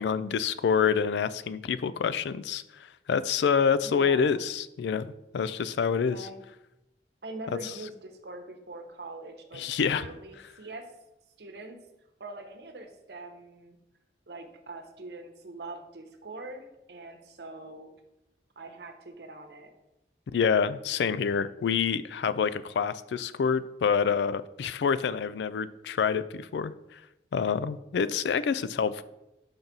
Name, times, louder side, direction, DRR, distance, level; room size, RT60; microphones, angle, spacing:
voice 1, 0.0-6.3 7.5-7.7 9.5-10.1 20.3-27.0 27.3-29.0, left 6 dB, 80° left, 15 dB, 0.3 m, -27 dB
voice 2, 3.8-4.3 6.1-6.4 7.2-9.6 9.9-10.9 11.4-11.8 12.2-13.8 14.3-17.9 18.6-19.7, right 2 dB, 75° right, 5 dB, 0.9 m, -43 dB
5.2 x 3.9 x 6.0 m, 0.91 s
head